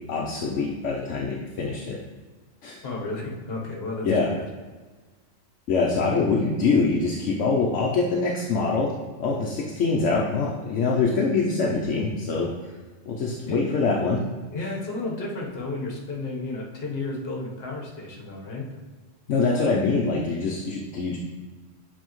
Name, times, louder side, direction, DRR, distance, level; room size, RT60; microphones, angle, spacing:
voice 1, 0.1-2.0 2.6-2.8 4.0-4.3 5.7-8.9 9.2-12.5 13.1-14.2 19.3-21.2, left 4 dB, 75° left, -2 dB, 1.0 m, -24 dB
voice 2, 2.8-4.5 13.4-13.6 14.5-18.7, left 2 dB, 50° left, -2 dB, 1.3 m, -32 dB
7.5 x 4.2 x 3.0 m, 1.4 s
omnidirectional pair, 1.3 m